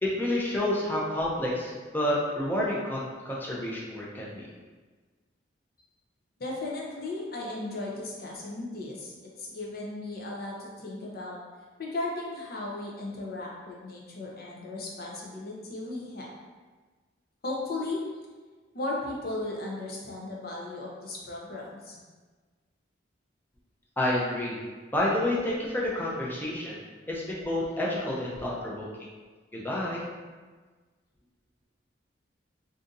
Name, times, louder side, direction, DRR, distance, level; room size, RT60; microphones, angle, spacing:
voice 1, 0.0-4.4 24.0-24.6 24.9-26.8 27.1-28.9 29.5-30.0, left 1 dB, 10° left, -5 dB, 0.5 m, -29 dB
voice 2, 6.4-11.4 11.8-16.3 17.4-18.0 18.7-22.0, left 2 dB, 50° left, -3 dB, 0.7 m, -36 dB
2.6 x 2.5 x 3.7 m, 1.4 s
head